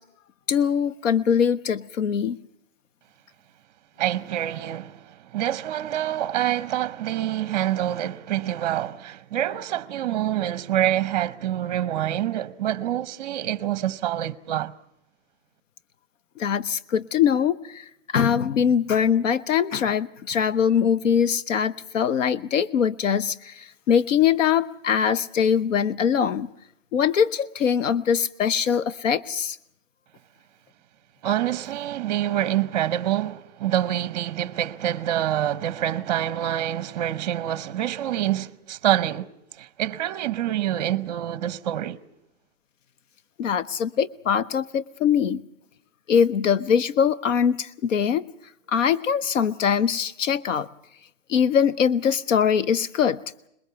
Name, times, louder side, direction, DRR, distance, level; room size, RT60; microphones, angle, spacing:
voice 1, 0.5-2.4 16.4-17.8 18.1-23.5 23.9-26.5 26.9-29.6 43.4-45.4 46.1-48.3 48.7-50.7 51.3-53.2, left 7 dB, 75° left, 0.8 m, -22 dB
voice 2, 4.0-14.7 31.2-39.3 39.6-42.0, right 12 dB, 35° right, 0.7 m, -26 dB
22.0 x 21.0 x 6.9 m
hypercardioid pair, 165°, 38 cm